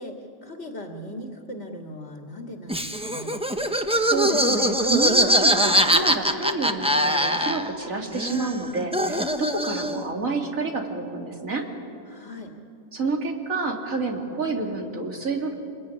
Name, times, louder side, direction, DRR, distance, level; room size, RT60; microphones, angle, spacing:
voice 1, 0.0-3.4 12.1-12.6, left 1 dB, 55° left, 2 dB, 2.4 m, -39 dB
Laughter, 2.7-7.9 8.1-10.1, equal, 5° right, 1.1 m, -22 dB
voice 2, 4.0-11.6 12.9-15.6, right 3 dB, 90° right, 2 dB, 3.2 m, -29 dB
27.5 x 21.0 x 9.8 m, 2.5 s
omnidirectional pair, 1.4 m